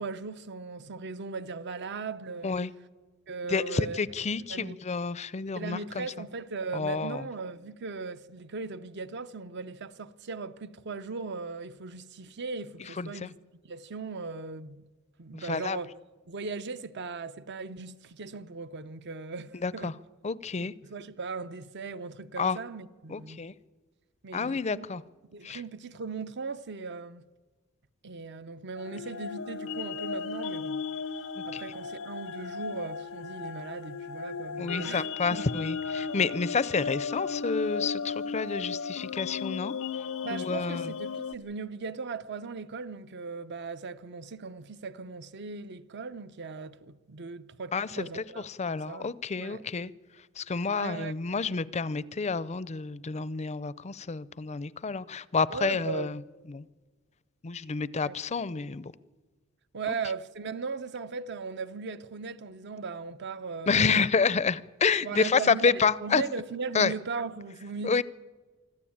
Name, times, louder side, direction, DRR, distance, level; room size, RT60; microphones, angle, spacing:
voice 1, 0.0-2.6 3.3-4.0 4.5-4.8 5.6-13.4 13.6-14.9 15.2-15.9 16.3-19.9 20.6-23.4 24.2-24.9 25.3-27.2 28.0-30.8 31.4-35.6 40.2-49.6 50.7-51.1 55.5-56.1 58.0-58.1 59.7-64.1 65.0-68.0, right 4 dB, 55° right, 0.7 m, -38 dB
voice 2, 3.5-6.1 6.7-7.3 13.0-13.3 15.3-15.8 19.5-19.9 20.2-20.7 22.4-22.6 23.1-23.5 24.3-25.0 25.4-25.6 31.5-31.6 34.6-39.7 40.3-40.9 47.7-49.9 50.4-56.2 56.5-56.6 57.4-58.9 59.9-60.0 63.7-66.2 66.7-66.9 67.8-68.0, left 5 dB, 35° left, 0.5 m, -29 dB
sound 1, 28.8-41.4, left 5 dB, 85° left, 0.9 m, -35 dB
25.0 x 14.0 x 8.7 m
head